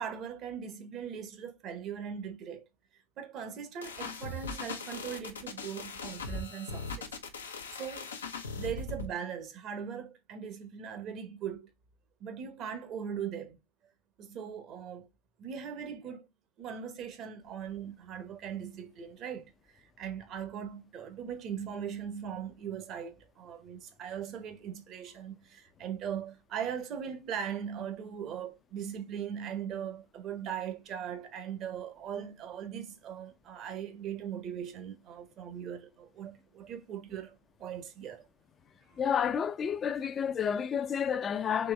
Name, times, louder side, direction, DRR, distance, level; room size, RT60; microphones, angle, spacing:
voice 1, 0.0-2.6 3.2-7.1 7.8-8.2 8.5-11.7 12.2-13.6 14.2-15.1 15.4-16.3 16.6-38.3 38.9-39.0, right 8 dB, 45° right, 1.0 m, -40 dB
sound 1, 3.8-9.1, left 3 dB, 85° left, 0.7 m, -39 dB
voice 2, 39.0-41.7, left 7 dB, 30° left, 0.5 m, -30 dB
4.2 x 3.0 x 3.3 m
hypercardioid pair, 90°, 0 cm